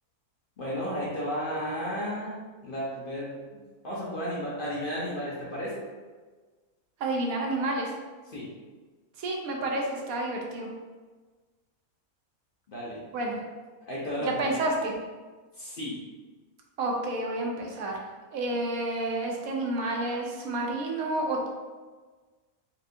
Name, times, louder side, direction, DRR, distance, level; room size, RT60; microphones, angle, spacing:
voice 1, 0.6-3.4 3.8-5.8 8.3-8.5 12.7-13.0 13.9-14.6 15.6-16.0, equal, 45° left, -7 dB, 0.7 m, -33 dB
voice 2, 7.0-7.9 9.2-10.7 13.1-13.4 14.2-14.9 16.8-18.0 18.3-21.5, right 2 dB, 75° right, 0 dB, 1.0 m, -30 dB
4.3 x 2.5 x 2.6 m, 1.4 s
omnidirectional pair, 1.5 m